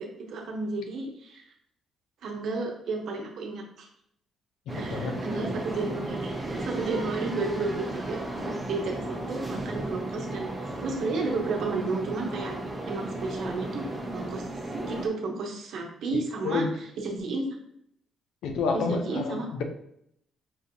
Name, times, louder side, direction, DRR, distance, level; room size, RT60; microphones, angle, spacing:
voice 1, 0.0-1.4 2.2-3.9 4.7-8.2 8.7-10.5 10.8-12.5 12.9-14.5 14.9-16.7 17.0-17.4 18.7-19.6, right 3 dB, 70° right, 1 dB, 0.9 m, -32 dB
voice 2, 4.7-5.1 5.4-5.6 16.1-16.8 18.4-19.6, left 4 dB, 85° left, 5 dB, 0.5 m, -30 dB
sound 1, 4.7-15.1, right 1 dB, 20° right, 1.0 m, -34 dB
5.5 x 2.6 x 2.7 m, 0.72 s
cardioid pair, 90°, 0 cm